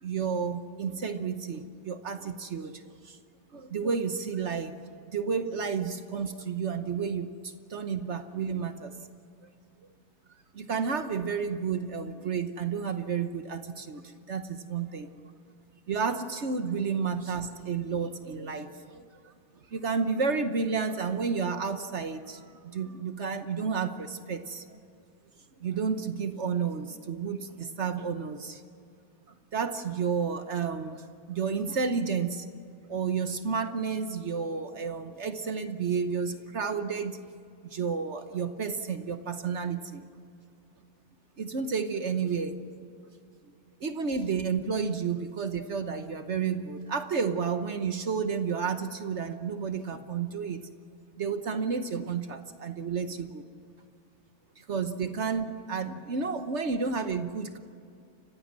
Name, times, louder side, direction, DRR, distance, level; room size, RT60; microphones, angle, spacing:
voice 1, 0.0-3.2 3.5-4.7 5.1-8.9 10.5-14.0 14.3-15.1 15.9-19.3 19.7-24.8 25.6-28.6 29.5-32.5 32.9-37.2 37.7-40.0 41.4-42.6 43.8-50.6 51.2-53.4 54.6-57.6, right 5 dB, 45° right, 9 dB, 1.1 m, -31 dB
29.5 x 15.5 x 7.5 m, 2.5 s
omnidirectional pair, 1.9 m